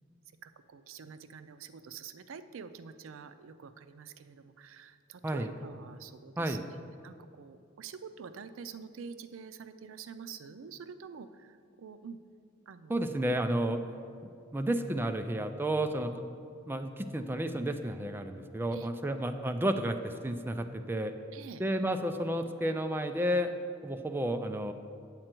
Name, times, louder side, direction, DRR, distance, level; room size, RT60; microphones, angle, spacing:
voice 1, 0.4-6.8 7.0-12.2 12.7-13.2 18.7-19.2 21.3-21.6, right 6 dB, 90° right, 11 dB, 0.4 m, -47 dB
voice 2, 12.9-13.8 14.5-16.1 16.7-21.1 21.6-23.5 23.8-24.7, right 1 dB, 10° right, 7 dB, 0.4 m, -31 dB
9.0 x 7.5 x 4.4 m, 2.5 s
head